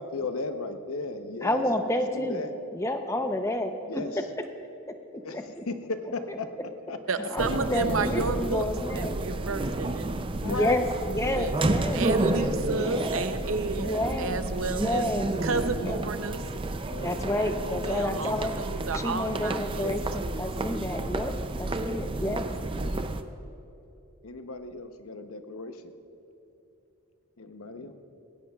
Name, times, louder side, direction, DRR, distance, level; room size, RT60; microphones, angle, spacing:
voice 1, 0.0-1.6 2.1-2.5 3.8-4.2 5.2-6.5 6.9-7.6 8.1-8.4 10.4-10.8 11.2-11.3 13.9-14.1 14.8-15.4 16.9-18.3 19.3-19.4 24.2-25.8 27.4-27.9, left 3 dB, 75° left, 7 dB, 0.9 m, -36 dB
voice 2, 1.4-2.4 2.7-4.0 5.3-5.6 7.3-9.1 10.5-13.1 13.8-14.4 14.7-15.3 15.7-16.0 17.0-18.6 19.0-21.3 21.6-22.4, left 1 dB, 15° left, 6 dB, 0.7 m, -30 dB
voice 3, 7.1-8.6 8.9-10.1 10.6-10.7 11.4-11.6 11.9-15.0 15.4-16.4 17.4-17.5 17.8-19.9, right 4 dB, 65° right, 9 dB, 0.7 m, -31 dB
sound 1, 7.4-23.2, right 2 dB, 25° right, 0.4 m, -31 dB
19.0 x 17.0 x 2.4 m, 2.8 s
head